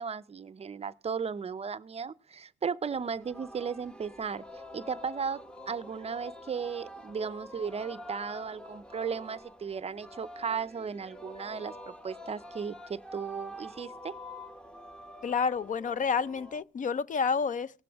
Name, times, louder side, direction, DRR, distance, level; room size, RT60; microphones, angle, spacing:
voice 1, 0.0-4.4 4.7-14.1, right 6 dB, 30° right, 0.5 m, -36 dB
Singing, 2.9-16.6, left 1 dB, 5° left, 0.8 m, -47 dB
voice 2, 15.2-17.7, left 5 dB, 40° left, 0.5 m, -29 dB
18.0 x 7.6 x 3.4 m
cardioid pair, 90°, 20 cm